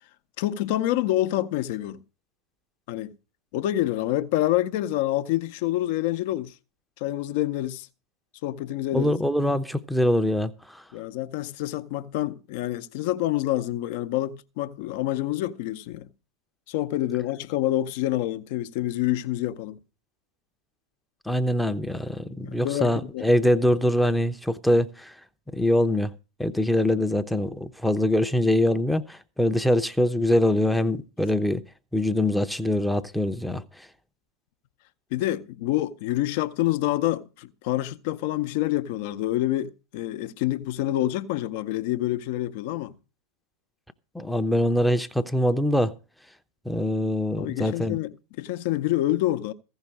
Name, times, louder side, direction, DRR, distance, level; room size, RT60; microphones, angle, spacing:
voice 1, 0.4-2.0 2.9-3.1 3.5-6.5 7.0-7.9 8.4-9.1 10.9-16.1 16.7-19.8 22.4-23.3 35.1-43.0 47.4-49.5, left 14 dB, 50° left, 0.8 m, -27 dB
voice 2, 8.9-10.8 21.3-25.1 25.5-26.1 26.4-31.6 31.9-33.6 44.1-45.9 46.7-48.0, left 1 dB, ahead, 0.7 m, -23 dB
15.0 x 5.7 x 7.3 m
figure-of-eight pair, 90°, 0 cm